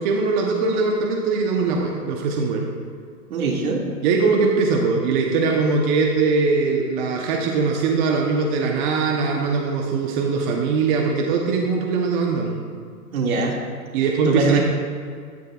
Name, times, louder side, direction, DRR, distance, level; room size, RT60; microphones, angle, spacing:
voice 1, 0.0-2.7 4.0-12.5 13.9-14.6, right 4 dB, 30° right, 1 dB, 0.9 m, -21 dB
voice 2, 3.3-3.9 13.1-13.6 14.3-14.6, right 4 dB, 65° right, 0 dB, 2.2 m, -22 dB
14.0 x 9.9 x 2.4 m, 2.1 s
hypercardioid pair, 140°, 46 cm